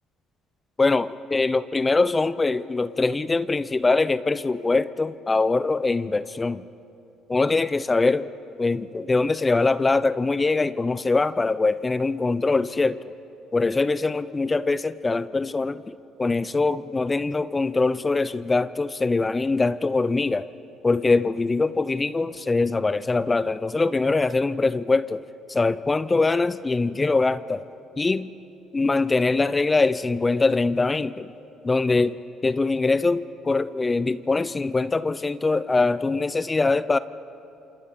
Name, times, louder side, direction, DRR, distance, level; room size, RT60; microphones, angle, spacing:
voice 1, 0.8-6.6 7.3-8.3 8.6-13.1 13.5-20.5 20.8-27.6 28.0-28.3 28.7-31.3 31.6-37.0, left 3 dB, 25° left, 16 dB, 0.6 m, -23 dB
27.5 x 27.5 x 4.3 m, 2.8 s
supercardioid pair, 65°, 0 cm